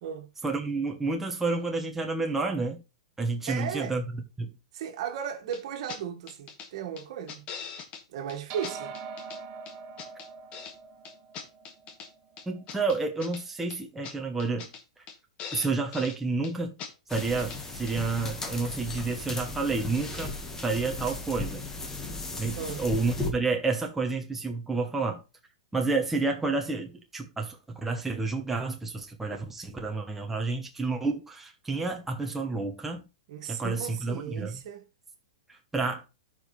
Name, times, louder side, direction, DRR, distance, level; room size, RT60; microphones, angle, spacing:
voice 1, 0.4-2.8 3.2-4.5 12.5-14.7 15.5-16.7 17.1-20.3 20.6-21.7 22.4-25.2 25.7-33.0 33.5-34.5 35.7-36.0, right 3 dB, 5° right, 1.1 m, -30 dB
voice 2, 3.5-4.0 4.7-7.4 8.1-8.9 22.5-22.8 33.3-34.8, right 8 dB, 55° right, 1.8 m, -36 dB
sound 1, 5.5-5.6 5.9-6.0 6.3-6.7 7.0-8.0 8.3-8.4 8.6-9.4 9.7-10.7 11.0-12.1 12.4-13.4 13.7-13.8 14.0-14.1 14.4-14.8 15.1-15.2 15.4-16.2 16.4-16.5 16.8-16.9 17.2-17.6 17.9-18.0, left 6 dB, 35° left, 1.7 m, -41 dB
sound 2, 8.5-13.2, right 5 dB, 40° right, 1.5 m, -44 dB
sound 3, 17.1-23.3, left 3 dB, 15° left, 1.6 m, -36 dB
13.0 x 5.1 x 3.3 m
hypercardioid pair, 135°, 4 cm